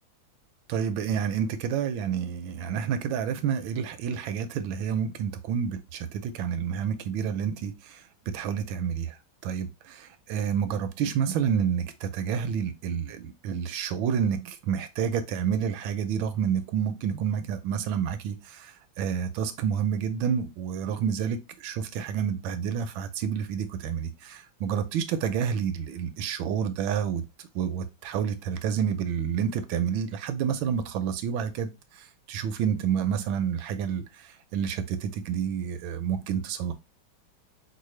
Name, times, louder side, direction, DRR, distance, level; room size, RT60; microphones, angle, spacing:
voice 1, 0.7-9.2 9.4-27.2 27.5-31.7 32.3-36.7, right 8 dB, 80° right, 1.3 m, -29 dB
4.6 x 2.3 x 3.1 m
omnidirectional pair, 2.2 m